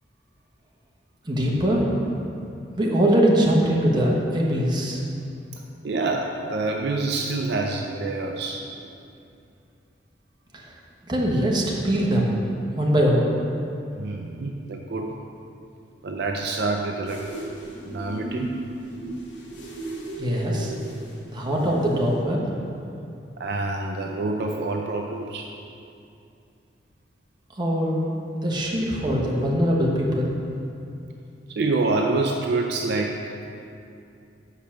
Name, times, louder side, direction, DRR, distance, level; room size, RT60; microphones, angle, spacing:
voice 1, 1.2-2.0 2.8-5.0 10.5-10.7 11.1-12.3 12.7-13.3 20.2-20.7 21.3-22.4 27.5-28.0 28.4-30.3, equal, 25° right, -3 dB, 1.1 m, -22 dB
voice 2, 5.5-8.7 13.9-15.2 16.0-17.2 17.8-18.5 20.4-20.7 21.6-21.7 23.4-25.5 31.5-33.2, right 3 dB, 60° right, 1 dB, 0.5 m, -27 dB
sound 1, 17.1-22.2, right 2 dB, 70° left, 1.1 m, -35 dB
5.7 x 5.3 x 6.4 m, 2.6 s
head